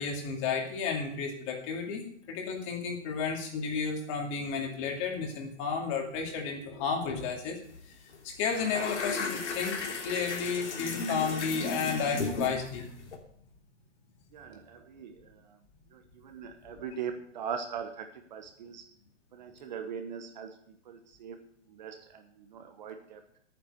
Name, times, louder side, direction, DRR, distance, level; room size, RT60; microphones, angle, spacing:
voice 1, 0.0-2.0 2.3-7.6 8.2-12.9 16.7-17.0, left 5 dB, 25° left, 2 dB, 2.4 m, -32 dB
sound 1, 7.7-7.9 8.1-13.2, left 3 dB, 75° left, 3.0 m, -35 dB
voice 2, 14.3-15.3 15.9-18.8 19.3-20.6 20.9-21.4 21.7-22.2 22.5-23.2, right 7 dB, 40° right, 6 dB, 1.1 m, -40 dB
11.0 x 9.3 x 6.5 m, 0.65 s
hypercardioid pair, 165°, 35 cm